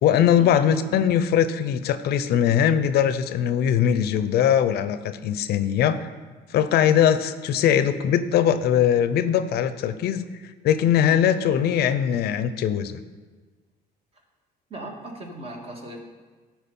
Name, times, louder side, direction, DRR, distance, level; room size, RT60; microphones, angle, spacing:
voice 1, 0.0-6.1 6.5-10.2 10.6-13.0, left 9 dB, 70° left, 12 dB, 0.6 m, -21 dB
voice 2, 14.7-16.0, right 1 dB, 35° right, 1 dB, 1.9 m, -37 dB
13.5 x 4.5 x 5.4 m, 1.4 s
cardioid pair, 110°, 17 cm